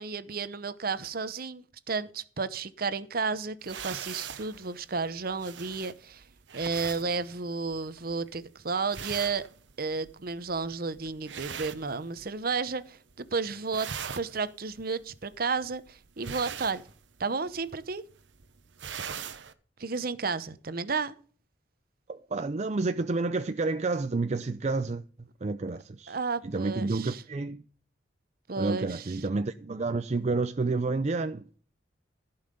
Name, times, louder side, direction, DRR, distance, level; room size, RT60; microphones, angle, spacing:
voice 1, 0.0-6.2 6.5-9.4 9.8-13.9 14.2-16.8 17.2-18.0 19.8-21.1 26.1-27.2 28.5-29.1, right 4 dB, 55° right, 0.9 m, -32 dB
sound 1, 3.6-12.6 12.9-13.3 13.6-19.5, right 7 dB, 85° right, 0.9 m, -42 dB
voice 2, 22.1-25.0 25.4-26.2 26.4-27.6 28.6-31.5, right 3 dB, 40° right, 0.5 m, -29 dB
15.0 x 5.7 x 6.7 m
head